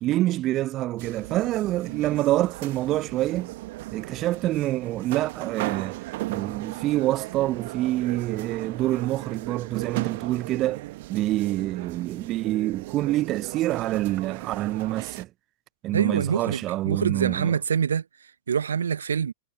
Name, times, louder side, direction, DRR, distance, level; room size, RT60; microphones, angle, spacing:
voice 1, 0.0-3.5 3.9-6.0 6.3-10.8 11.1-15.3 15.8-17.5, right 15 dB, 35° right, 0.8 m, -26 dB
sound 1, 1.0-15.2, right 19 dB, 50° right, 1.3 m, -37 dB
voice 2, 15.9-18.0 18.5-19.3, right 7 dB, 70° right, 0.9 m, -25 dB
figure-of-eight pair, 90°, 0 cm